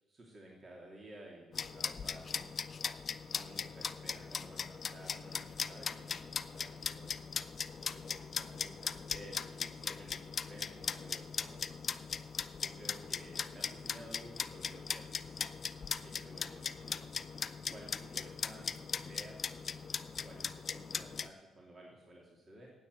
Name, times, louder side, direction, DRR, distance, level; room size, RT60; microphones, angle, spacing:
voice 1, 0.1-2.5 3.2-7.2 7.9-11.7 12.6-15.5 16.0-17.1 17.7-19.9 20.2-22.7, right 1 dB, 35° right, -2 dB, 2.9 m, -54 dB
sound 1, 1.5-21.3, left 6 dB, 45° left, 0.5 m, -39 dB
9.6 x 8.5 x 8.2 m, 1.1 s
cardioid pair, 90°, 0 cm